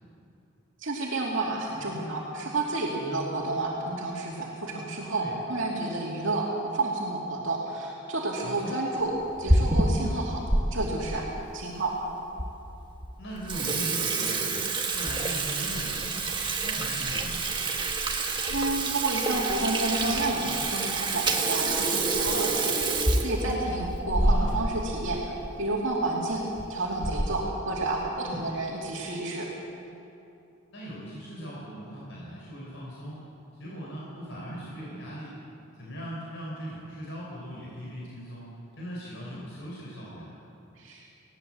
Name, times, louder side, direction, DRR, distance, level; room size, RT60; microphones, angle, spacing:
voice 1, 0.8-9.1 9.4-10.4 10.7-11.3 11.5-11.9 18.5-26.4 26.7-29.5 40.8-41.1, right 2 dB, 60° right, -3 dB, 2.6 m, -30 dB
Water tap faucet / Sink (filling or washing), 9.2-10.6 11.1-11.2 11.9-12.0 12.4-12.5 12.9-13.1 13.4-24.8 25.1-25.2 25.4-25.6 26.4-26.6 27.0-27.5, right 2 dB, 20° right, 1.5 m, -27 dB
voice 2, 13.2-14.7 14.9-16.3 16.6-17.4 24.1-24.5 28.2-28.4 30.7-33.2 33.6-35.3 35.8-40.3, equal, 60° left, -5 dB, 4.8 m, -39 dB
20.0 x 17.5 x 7.7 m, 2.8 s
head